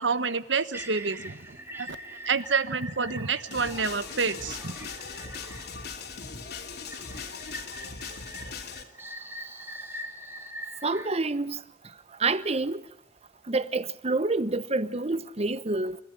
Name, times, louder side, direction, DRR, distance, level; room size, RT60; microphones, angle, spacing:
voice 1, 0.0-2.0 2.3-4.7, right 5 dB, 90° right, 1.3 m, -28 dB
sound 1, 0.7-6.0 6.9-11.1, right 1 dB, 15° right, 2.2 m, -43 dB
sound 2, 3.5-8.8, left 5 dB, 60° left, 2.9 m, -39 dB
voice 2, 10.8-11.6 12.2-12.8 13.5-16.0, right 3 dB, 35° right, 1.0 m, -27 dB
29.0 x 13.5 x 10.0 m
head